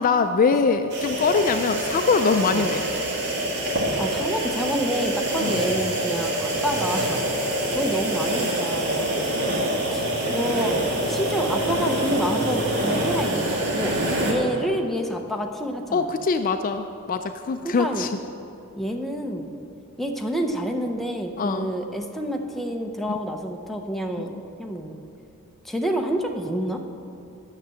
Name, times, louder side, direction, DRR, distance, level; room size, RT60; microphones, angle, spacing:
voice 1, 0.0-2.9 5.4-5.6 8.9-9.0 10.2-10.3 15.9-18.1 21.4-21.7 24.2-24.4, left 4 dB, 40° left, 8 dB, 0.4 m, -23 dB
sound 1, 0.9-14.3, right 1 dB, 55° right, 1.8 m, -25 dB
voice 2, 4.0-7.2 7.7-9.2 9.5-14.0 14.2-16.1 17.6-18.1 18.8-19.5 20.0-25.0 25.6-26.8, equal, ahead, 2 dB, 0.7 m, -28 dB
9.6 x 6.7 x 7.5 m, 2.7 s
head